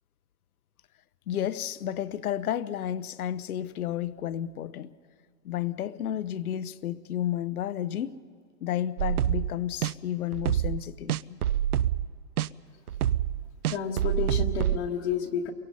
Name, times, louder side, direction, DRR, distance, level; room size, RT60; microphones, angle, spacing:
voice 1, 1.3-4.9 5.4-8.2 8.6-11.4, left 11 dB, 65° left, 0.9 m, -32 dB
sound 1, 9.0-9.5 9.8-9.9 10.3-10.8 11.1-12.1 12.4-12.5 12.9-14.8, right 11 dB, 70° right, 0.6 m, -26 dB
voice 2, 13.7-15.5, left 7 dB, 45° left, 1.4 m, -30 dB
29.5 x 23.0 x 5.5 m
hypercardioid pair, 155°, 47 cm